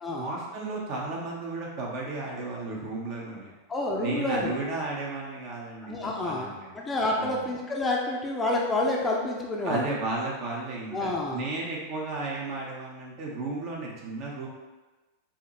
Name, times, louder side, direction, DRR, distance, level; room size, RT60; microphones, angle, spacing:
voice 1, 0.2-3.5 4.0-5.9 6.2-6.8 7.2-7.4 9.6-14.5, right 3 dB, 40° right, -2 dB, 1.0 m, -34 dB
voice 2, 3.7-4.5 5.9-9.9 10.9-11.4, left 2 dB, 15° left, -2 dB, 0.6 m, -28 dB
4.7 x 2.8 x 3.0 m, 1.2 s
figure-of-eight pair, 90°, 0 cm